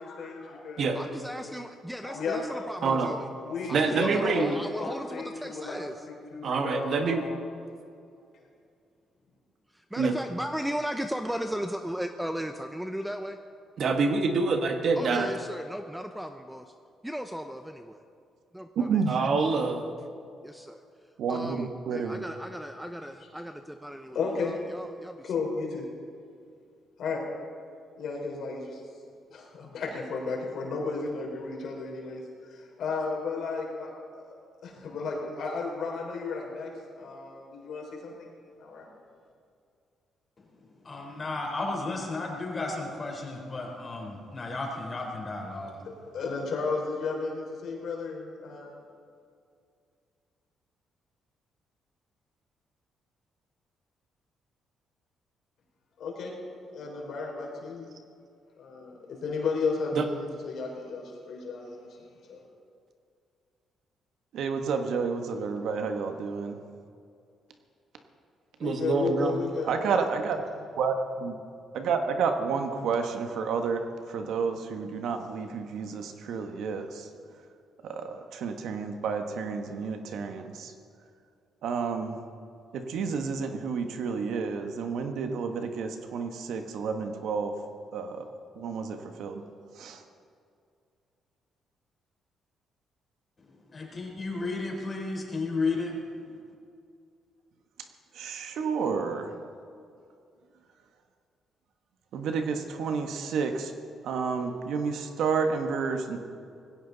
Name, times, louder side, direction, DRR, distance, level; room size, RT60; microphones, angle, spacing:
voice 1, 0.0-1.0 1.3-1.4 2.0-3.0 3.4-5.8 6.1-7.4 24.1-24.5 25.2-25.8 27.0-27.2 28.0-28.8 29.3-34.3 34.6-36.7 37.0-38.9 46.1-48.7 56.0-56.3 56.7-57.9 58.6-61.9 62.3-62.4 68.6-69.8, left 4 dB, 70° left, -1 dB, 4.2 m, -34 dB
voice 2, 0.9-3.3 3.7-5.9 9.7-13.4 15.0-16.7 17.0-18.0 18.5-19.0 20.4-20.8 21.3-25.3, equal, 5° right, 7 dB, 0.7 m, -36 dB
voice 3, 2.8-3.2 3.7-4.6 6.4-7.2 10.0-10.1 13.8-15.3 19.1-19.9 59.9-60.1 68.6-69.4, right 4 dB, 60° right, 6 dB, 1.5 m, -26 dB
voice 4, 18.7-19.1 21.2-22.2 64.3-66.6 69.7-70.4 70.8-71.3 71.7-77.1 77.8-80.7 81.6-82.1 82.7-87.5 87.9-88.3 88.6-89.4 89.8-90.0 98.1-99.3 102.1-103.7 104.0-106.2, right 5 dB, 75° right, 6 dB, 1.4 m, -30 dB
voice 5, 40.8-45.9 93.7-96.0, left 3 dB, 30° left, 0 dB, 4.0 m, -33 dB
19.0 x 16.0 x 4.1 m, 2.4 s
cardioid pair, 90°, 0 cm